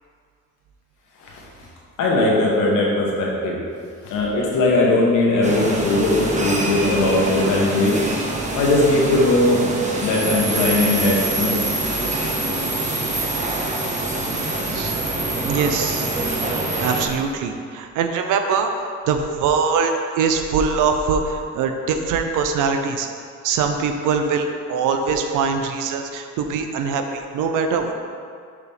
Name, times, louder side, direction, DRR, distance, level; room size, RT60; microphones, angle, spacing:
voice 1, 2.0-3.6 4.0-8.0 8.5-9.6 10.0-11.6 14.8-14.9, left 2 dB, 85° left, -3 dB, 1.4 m, -19 dB
sound 1, 5.4-17.1, right 2 dB, 25° right, 1.0 m, -25 dB
voice 2, 15.4-16.3 16.8-23.1 23.4-27.9, right 5 dB, 85° right, 6 dB, 0.6 m, -22 dB
6.5 x 4.9 x 3.6 m, 2.3 s
cardioid pair, 90°, 30 cm